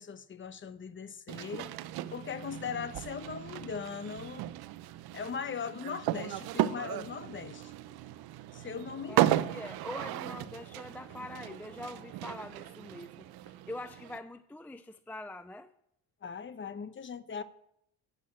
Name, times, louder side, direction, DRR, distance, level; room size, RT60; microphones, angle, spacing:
voice 1, 0.0-1.8 2.1-4.5 5.1-7.7 8.5-9.6 16.2-17.4, left 6 dB, 30° left, 0.9 m, -40 dB
sound 1, 1.3-14.2, right 14 dB, 75° right, 0.8 m, -35 dB
voice 2, 9.1-13.3 13.7-15.7, left 1 dB, 5° left, 0.5 m, -44 dB
12.0 x 8.0 x 8.6 m
cardioid pair, 105°, 38 cm